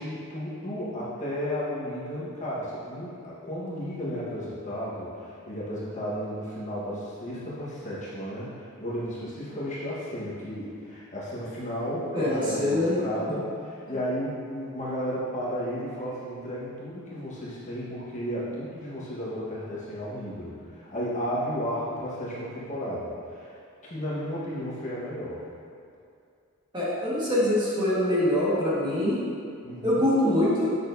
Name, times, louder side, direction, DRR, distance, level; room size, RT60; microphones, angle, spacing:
voice 1, 0.0-23.5 23.8-25.5 29.6-30.0, equal, 35° left, -8 dB, 1.4 m, -33 dB
voice 2, 12.1-12.9 26.7-29.2 29.8-30.7, left 1 dB, 20° right, -9 dB, 1.6 m, -24 dB
8.6 x 6.4 x 2.7 m, 2.4 s
head